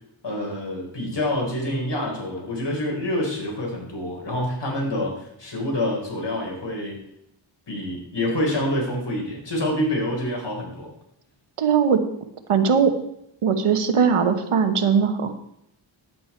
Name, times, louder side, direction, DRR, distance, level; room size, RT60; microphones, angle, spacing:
voice 1, 0.2-7.0 7.7-10.9, left 1 dB, 55° left, -1 dB, 4.6 m, -27 dB
voice 2, 11.6-12.0 12.5-12.9 13.4-15.3, right 6 dB, 90° right, 8 dB, 1.3 m, -19 dB
10.5 x 8.7 x 4.5 m, 0.79 s
cardioid pair, 60°, 49 cm